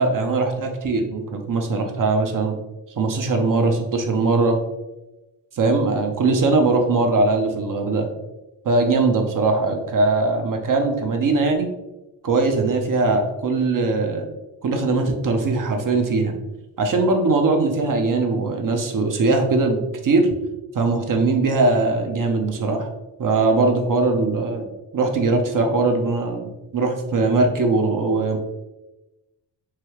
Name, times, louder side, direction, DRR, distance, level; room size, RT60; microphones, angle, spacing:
voice 1, 0.0-2.6 3.0-4.6 5.5-8.1 8.6-11.7 12.2-14.3 14.6-16.4 16.8-20.3 20.7-22.9 23.2-28.4, right 3 dB, 40° right, 4 dB, 0.7 m, -20 dB
3.2 x 2.3 x 3.0 m, 1.0 s
supercardioid pair, 50°, 50 cm